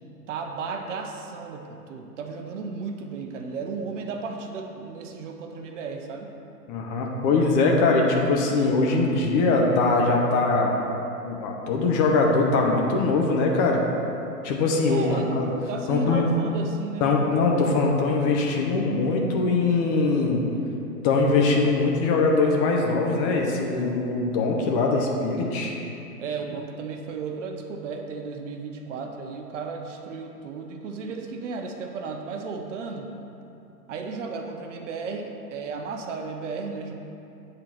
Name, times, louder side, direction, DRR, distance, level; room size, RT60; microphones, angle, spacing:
voice 1, 0.3-6.3 14.9-15.3 15.7-17.1 26.2-33.1 33.9-36.9, right 4 dB, 50° right, 4 dB, 0.9 m, -34 dB
voice 2, 6.7-10.7 11.2-13.8 14.4-15.5 15.9-16.2 17.0-20.4 21.0-25.7, left 3 dB, 25° left, 0 dB, 0.8 m, -22 dB
9.0 x 3.9 x 5.9 m, 2.8 s
hypercardioid pair, 125°, 47 cm